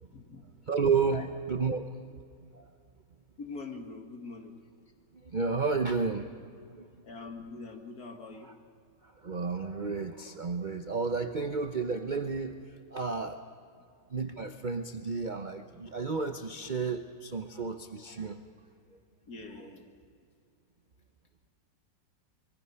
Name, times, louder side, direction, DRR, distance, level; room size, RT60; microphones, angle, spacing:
voice 1, 0.0-0.5 1.1-1.3 3.4-4.6 7.0-8.5 19.3-19.9, left 3 dB, 55° left, 3 dB, 2.4 m, -43 dB
voice 2, 0.7-2.0 2.5-2.6 5.2-6.9 8.4-8.5 9.2-13.4 14.1-18.6 18.9-19.0 19.6-19.7, right 4 dB, 50° right, 7 dB, 0.5 m, -32 dB
25.0 x 23.0 x 5.7 m, 2.3 s
omnidirectional pair, 2.0 m